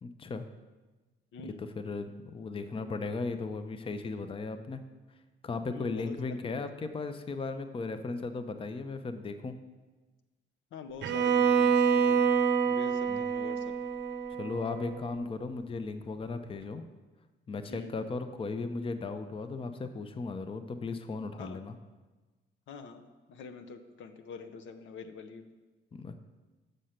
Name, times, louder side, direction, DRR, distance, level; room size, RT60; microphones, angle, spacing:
voice 1, 0.0-0.4 1.4-4.8 5.4-9.6 13.1-13.2 14.4-16.8 17.5-21.8 25.9-26.1, left 3 dB, 25° left, 9 dB, 0.6 m, -36 dB
voice 2, 5.7-6.5 10.7-12.3 12.7-13.7 17.7-18.0 21.4-21.6 22.7-23.0 23.3-25.5, left 5 dB, 75° left, 7 dB, 0.7 m, -46 dB
Bowed string instrument, 11.0-15.0, right 6 dB, 60° right, 0.6 m, -27 dB
6.6 x 6.3 x 5.8 m, 1.2 s
cardioid pair, 90°, 20 cm